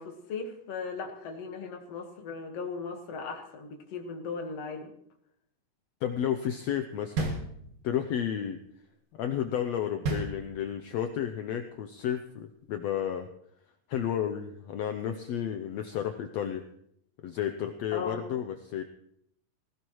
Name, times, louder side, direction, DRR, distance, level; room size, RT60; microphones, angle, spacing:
voice 1, 0.0-4.9 17.9-18.2, left 4 dB, 55° left, 3 dB, 2.4 m, -37 dB
voice 2, 6.0-7.4 7.8-8.6 9.1-13.3 13.9-16.6 17.2-18.8, left 9 dB, 85° left, 7 dB, 1.5 m, -32 dB
sound 1, 7.2-8.1 10.0-11.0, right 3 dB, 75° right, 3.4 m, -33 dB
20.0 x 17.0 x 3.1 m, 0.71 s
omnidirectional pair, 3.9 m